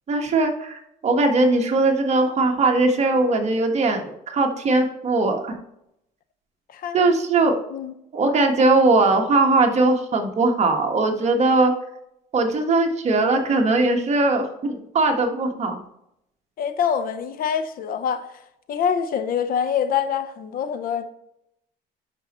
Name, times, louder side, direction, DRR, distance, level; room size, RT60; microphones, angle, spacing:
voice 1, 0.1-5.6 6.9-7.6 8.1-11.7 12.3-15.8, right 3 dB, 40° right, 1.4 m, -20 dB
voice 2, 16.6-18.3 18.7-21.0, left 7 dB, 60° left, 0.8 m, -25 dB
11.5 x 5.3 x 3.0 m
cardioid pair, 110°, 17 cm